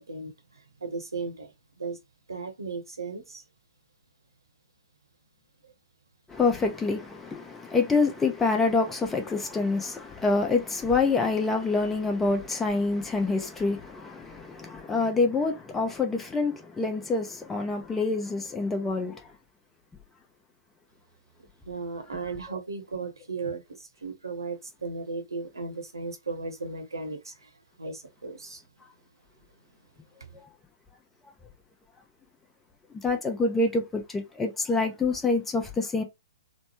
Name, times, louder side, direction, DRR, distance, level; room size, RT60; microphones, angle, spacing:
voice 1, 0.0-2.0 2.3-3.4 5.6-5.7 21.6-27.5 27.8-28.6 30.2-30.3, right 4 dB, 70° right, 0.9 m, -36 dB
voice 2, 6.3-19.2 33.0-36.0, left 3 dB, 10° left, 0.6 m, -26 dB
3.1 x 2.0 x 2.9 m
figure-of-eight pair, 115°, 2 cm